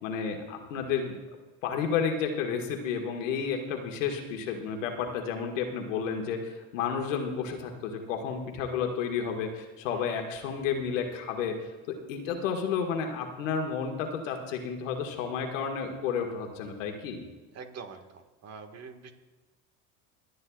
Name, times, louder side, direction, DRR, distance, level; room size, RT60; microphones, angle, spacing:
voice 1, 0.0-1.1 1.6-11.5 11.9-17.2, left 6 dB, 90° left, 3 dB, 1.8 m, -31 dB
voice 2, 17.5-18.0 18.4-19.1, right 5 dB, 45° right, 6 dB, 1.7 m, -44 dB
26.5 x 9.6 x 2.4 m, 1.3 s
supercardioid pair, 90°, 37 cm